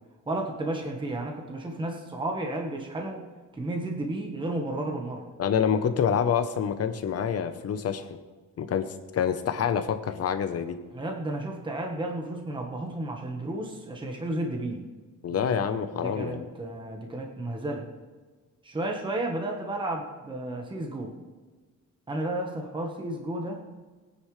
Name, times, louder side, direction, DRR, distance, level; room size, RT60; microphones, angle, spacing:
voice 1, 0.3-3.3 3.5-5.3 10.9-14.8 15.3-15.6 15.9-17.8 18.6-21.1 22.1-23.6, right 1 dB, 15° right, 1 dB, 1.2 m, -32 dB
voice 2, 5.4-8.2 8.6-10.8 15.2-16.5, left 7 dB, 50° left, 9 dB, 0.8 m, -27 dB
20.0 x 9.8 x 3.2 m, 1.3 s
wide cardioid pair, 170°, 32 cm